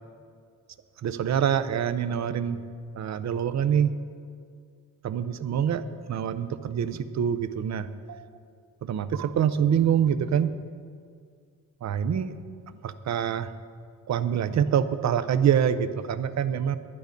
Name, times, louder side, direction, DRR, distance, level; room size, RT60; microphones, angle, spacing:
voice 1, 1.0-2.6 3.0-3.9 5.0-5.8 6.1-8.3 8.8-10.5 11.8-12.4 12.8-13.5 14.1-16.8, right 8 dB, 55° right, 12 dB, 0.5 m, -25 dB
11.0 x 10.5 x 5.1 m, 2.2 s
wide cardioid pair, 155°, 34 cm